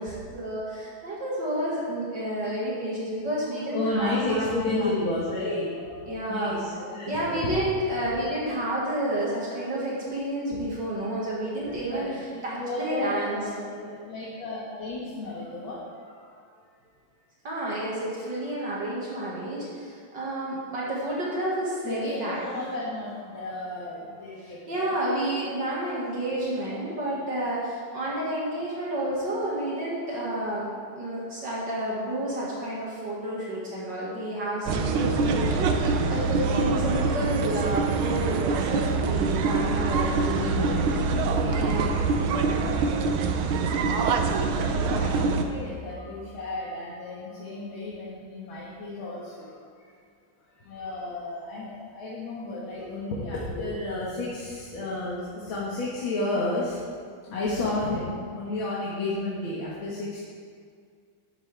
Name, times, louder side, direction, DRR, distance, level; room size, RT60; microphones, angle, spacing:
voice 1, 0.0-5.0 6.1-6.6 7.0-12.1 12.4-13.4 17.4-22.4 24.4-40.7 41.5-41.9, right 1 dB, 60° right, -6 dB, 2.6 m, -30 dB
voice 2, 3.7-7.6 8.2-8.3 10.5-10.6 11.6-16.4 21.8-25.0 25.9-26.1 35.5-35.6 36.6-37.0 40.8-40.9 41.1-43.2 43.5-49.9 50.5-56.8 57.2-60.2, left 2 dB, 75° left, -7 dB, 2.4 m, -33 dB
sound 1, 34.7-45.4, right 4 dB, 90° right, 1.6 m, -25 dB
12.5 x 10.5 x 3.5 m, 2.1 s
omnidirectional pair, 2.2 m